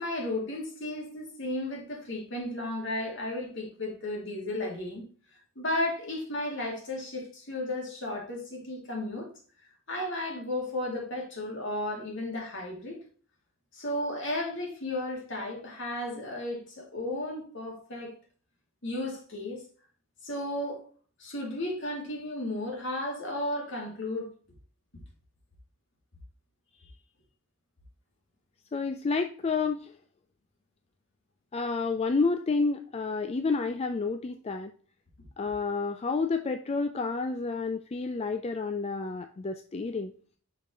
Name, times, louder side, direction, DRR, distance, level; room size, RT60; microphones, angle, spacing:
voice 1, 0.0-5.0 5.6-9.3 9.9-13.0 13.7-18.1 18.8-19.6 20.2-20.8 21.2-24.3, left 1 dB, 60° left, 2.5 m, -34 dB
voice 2, 28.7-29.9 31.5-34.7 35.4-40.1, left 4 dB, 30° left, 0.4 m, -30 dB
5.9 x 5.8 x 3.8 m
head